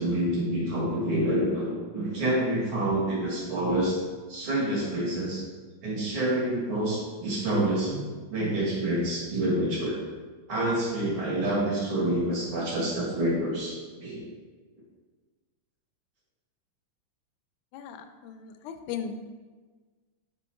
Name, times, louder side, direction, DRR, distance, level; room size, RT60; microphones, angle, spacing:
voice 1, 0.0-4.0 4.3-5.4 5.8-10.0 10.5-14.3, right 1 dB, 50° right, -4 dB, 2.2 m, -27 dB
voice 2, 17.7-19.1, left 8 dB, 80° left, 8 dB, 2.0 m, -37 dB
6.0 x 5.3 x 4.4 m, 1.4 s
omnidirectional pair, 3.6 m